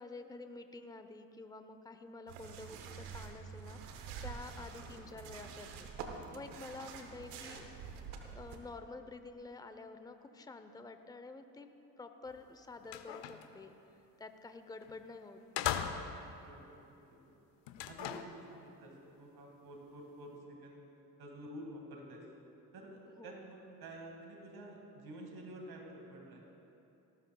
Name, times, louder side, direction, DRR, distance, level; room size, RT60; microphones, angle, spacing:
voice 1, 0.0-5.9 6.3-7.7 8.3-11.7 12.0-13.7 14.2-15.4 23.2-23.5, left 3 dB, 10° left, 8 dB, 0.7 m, -49 dB
sound 1, 2.3-8.6, right 6 dB, 85° right, 1.1 m, -47 dB
sound 2, 12.3-12.4 12.8-13.5 14.8-15.0 15.6-16.3 17.7-18.4, left 10 dB, 65° left, 0.8 m, -38 dB
voice 2, 16.4-17.4 17.9-20.8 21.2-22.2 22.7-26.4, right 1 dB, 50° right, 0 dB, 2.1 m, -50 dB
18.0 x 12.0 x 2.3 m, 3.0 s
hypercardioid pair, 50°, 47 cm